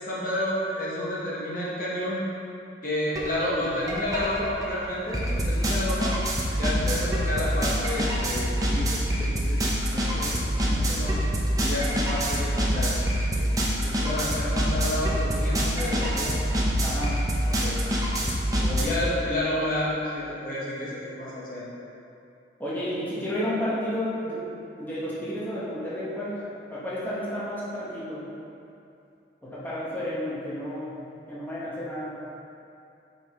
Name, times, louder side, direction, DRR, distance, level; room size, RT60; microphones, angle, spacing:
voice 1, 0.1-2.2 2.8-6.1 6.6-11.2 11.6-13.0 13.3-13.5 13.8-16.3 17.4-17.8 18.8-21.6, left 1 dB, 50° left, -7 dB, 1.2 m, -30 dB
sound 1, 3.2-3.3 3.6-18.8, equal, 20° right, 0.7 m, -26 dB
voice 2, 16.8-17.2 18.6-19.0 22.6-24.4 24.7-28.2 29.4-31.0 31.3-32.2, left 1 dB, 10° left, -10 dB, 1.2 m, -32 dB
7.7 x 5.3 x 3.0 m, 2.6 s
head